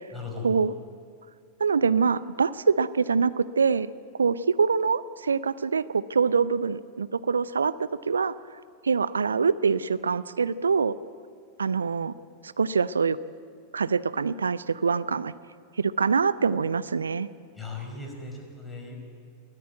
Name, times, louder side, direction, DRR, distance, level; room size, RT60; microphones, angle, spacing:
voice 1, 0.1-0.5 17.6-19.0, left 4 dB, 10° left, 1 dB, 5.6 m, -38 dB
voice 2, 1.6-3.9 4.2-8.3 8.8-11.0 11.6-12.1 12.4-13.2 13.7-15.3 15.8-17.3, right 5 dB, 75° right, 17 dB, 0.5 m, -24 dB
22.0 x 14.5 x 9.4 m, 2.2 s
figure-of-eight pair, 90°, 0 cm